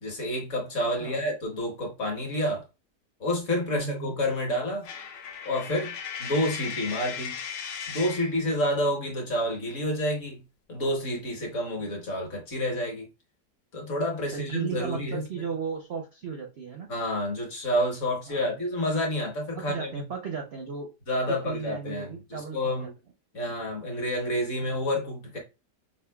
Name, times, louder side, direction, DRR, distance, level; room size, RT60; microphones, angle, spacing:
voice 1, 0.0-2.6 3.2-4.9 5.4-5.9 6.2-7.4 7.9-10.4 10.7-13.1 13.7-15.4 16.9-20.1 21.1-22.9 23.3-25.4, left 1 dB, 50° left, 1.4 m, -29 dB
voice 2, 3.7-4.1 14.3-16.9 18.3-18.5 19.5-20.9 21.3-22.9 24.5-24.8, right 6 dB, 60° right, 0.6 m, -35 dB
Coin (dropping), 4.8-8.4, left 7 dB, 90° left, 1.3 m, -37 dB
5.3 x 2.4 x 2.2 m
omnidirectional pair, 1.9 m